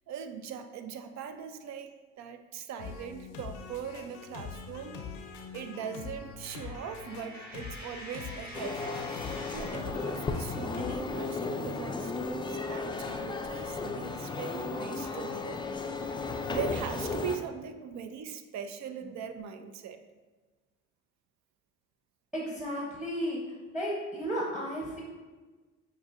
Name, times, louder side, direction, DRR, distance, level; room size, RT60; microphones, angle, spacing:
voice 1, 0.1-5.0 5.5-8.9 9.5-15.6 16.5-20.0, right 7 dB, 65° right, 8 dB, 0.5 m, -40 dB
suspense loop, 2.8-11.0, left 5 dB, 90° left, 0.6 m, -44 dB
Coin (dropping), 6.4-9.9, equal, 30° right, 1.4 m, -46 dB
sound 1, 8.5-17.4, left 3 dB, 15° left, 0.3 m, -34 dB
voice 2, 22.3-23.4 23.7-25.0, equal, 5° right, -4 dB, 0.9 m, -33 dB
6.2 x 2.7 x 2.5 m, 1.3 s
supercardioid pair, 70°, 31 cm